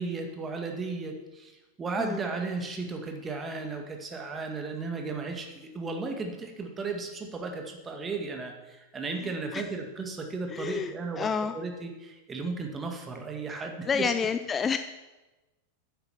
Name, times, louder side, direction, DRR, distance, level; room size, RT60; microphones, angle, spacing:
voice 1, 0.0-1.5 1.8-14.1, right 4 dB, 20° right, 3 dB, 1.9 m, -35 dB
voice 2, 9.2-9.6 10.5-11.5 13.5-14.8, left 6 dB, 20° left, 10 dB, 0.5 m, -30 dB
9.9 x 8.0 x 6.8 m, 1.1 s
figure-of-eight pair, 90°, 0 cm